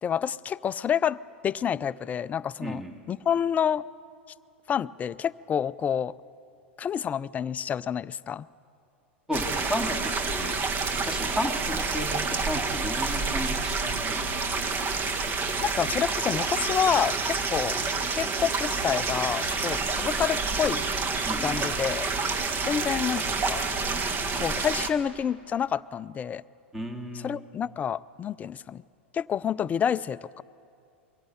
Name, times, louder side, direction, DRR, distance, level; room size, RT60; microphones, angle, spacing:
voice 1, 0.0-1.2 1.4-2.8 3.1-3.9 4.7-6.1 6.8-8.5 15.6-17.8 18.2-20.8 21.4-22.1 22.6-23.6 24.4-26.4 27.2-28.8 29.1-30.4, left 8 dB, 25° left, 18 dB, 0.5 m, -28 dB
voice 2, 2.6-3.0 9.3-10.7 11.0-14.3 21.3-21.6 26.7-27.4, equal, 10° right, 4 dB, 2.2 m, -33 dB
sound 1, 9.3-24.9, right 4 dB, 35° right, 1.7 m, -28 dB
23.0 x 16.5 x 9.3 m, 2.5 s
hypercardioid pair, 95°, 6 cm